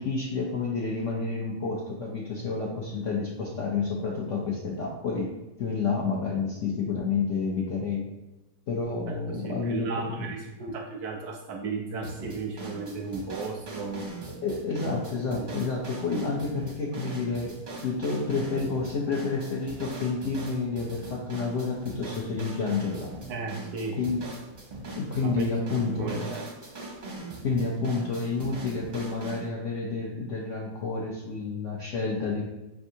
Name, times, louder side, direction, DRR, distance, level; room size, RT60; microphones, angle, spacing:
voice 1, 0.0-5.3 5.6-8.1 8.7-10.3 14.4-17.5 17.8-23.1 24.0-24.2 24.9-26.3 27.4-32.4, left 4 dB, 70° left, -3 dB, 0.7 m, -29 dB
voice 2, 9.1-14.1 15.3-15.5 23.3-24.0 25.2-26.4, right 4 dB, 70° right, 2 dB, 0.9 m, -35 dB
sound 1, 12.0-29.5, right 2 dB, 45° right, 0.6 m, -41 dB
5.3 x 3.4 x 2.7 m, 1.0 s
omnidirectional pair, 2.0 m